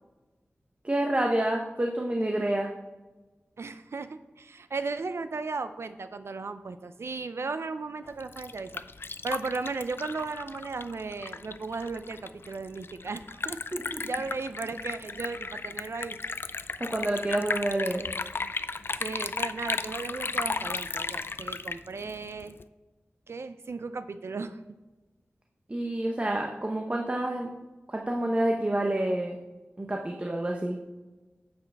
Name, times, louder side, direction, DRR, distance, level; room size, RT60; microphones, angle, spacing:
voice 1, 0.8-2.7 13.9-14.0 16.8-18.1 25.7-27.5 27.9-29.4 29.8-30.8, right 1 dB, 30° right, 1 dB, 0.9 m, -28 dB
voice 2, 3.6-8.8 9.2-13.6 14.0-16.2 19.0-22.6 23.3-24.6, right 4 dB, 70° right, 11 dB, 0.4 m, -36 dB
Liquid, 8.1-22.6, left 4 dB, 55° left, 0.4 m, -35 dB
9.9 x 7.9 x 3.4 m, 1.2 s
wide cardioid pair, 80°, 5 cm